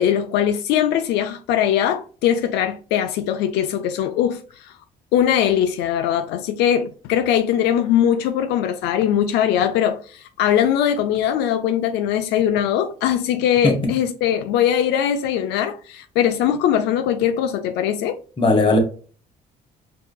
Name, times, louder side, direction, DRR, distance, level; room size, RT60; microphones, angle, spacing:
voice 1, 0.0-4.7 5.1-18.2, left 10 dB, 85° left, 0.5 m, -21 dB
voice 2, 18.4-18.8, left 2 dB, 30° left, 1.3 m, -17 dB
4.6 x 2.8 x 2.2 m
cardioid pair, 110°, 17 cm